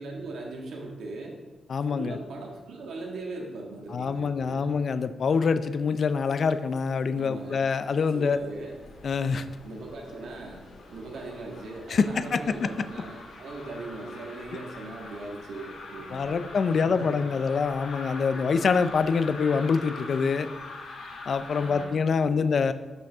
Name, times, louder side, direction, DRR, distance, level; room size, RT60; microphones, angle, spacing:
voice 1, 0.0-1.4 1.9-4.7 7.1-7.6 8.0-8.7 9.6-17.5 21.6-22.5, right 2 dB, 75° right, -1 dB, 1.7 m, -39 dB
voice 2, 1.7-2.2 3.9-8.4 9.0-9.5 11.9-12.4 16.1-20.5 21.3-22.7, left 5 dB, 50° left, 11 dB, 0.4 m, -25 dB
sound 1, 5.9-6.9 7.1-21.8, left 3 dB, 75° left, 1.7 m, -44 dB
11.5 x 5.3 x 3.5 m, 1.2 s
cardioid pair, 125°, 0 cm